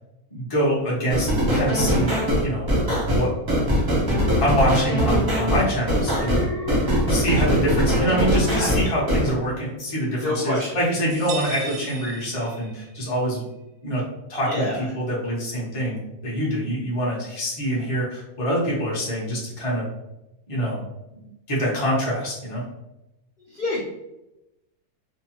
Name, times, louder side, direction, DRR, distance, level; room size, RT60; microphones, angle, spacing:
voice 1, 0.3-2.7 3.0-3.3 4.4-6.5 7.1-13.4 13.8-14.0 14.3-19.9 20.5-20.8 21.5-22.6, equal, 30° left, -6 dB, 0.6 m, -25 dB
sound 1, 1.1-9.3, equal, 25° right, 0.5 m, -21 dB
Alarm, 6.0-9.3 9.7-10.1, left 2 dB, 55° left, 1.0 m, -35 dB
voice 2, 10.2-10.7 14.5-14.8 23.5-23.9, left 2 dB, 75° left, -4 dB, 0.5 m, -26 dB
sound 2, 11.1-13.0, right 6 dB, 80° right, 1.1 m, -36 dB
2.7 x 2.1 x 2.8 m, 0.93 s
omnidirectional pair, 1.6 m